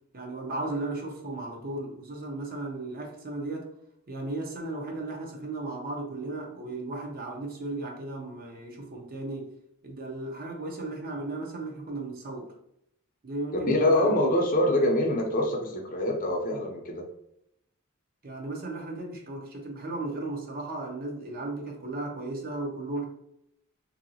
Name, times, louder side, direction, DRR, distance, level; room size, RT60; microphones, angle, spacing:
voice 1, 0.1-3.7 4.1-9.5 9.8-12.5 13.2-14.3 14.7-14.9 18.2-23.0, right 2 dB, 40° right, 0.6 m, -35 dB
voice 2, 13.7-17.0, left 1 dB, 40° left, 0.5 m, -25 dB
3.0 x 2.6 x 2.7 m
head